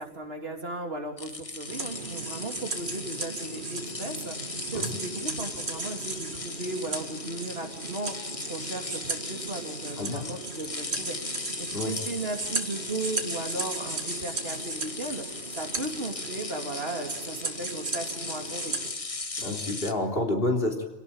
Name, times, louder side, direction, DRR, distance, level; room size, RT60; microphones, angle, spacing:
voice 1, 0.0-18.7, right 2 dB, 70° right, 3 dB, 3.3 m, -36 dB
sound 1, 1.2-19.9, left 3 dB, 35° left, 1.4 m, -38 dB
sound 2, 1.7-18.9, right 3 dB, 85° right, 2.2 m, -37 dB
voice 2, 19.4-20.8, left 2 dB, 60° left, 2 dB, 3.7 m, -28 dB
26.5 x 17.5 x 8.9 m, 1.2 s
omnidirectional pair, 1.1 m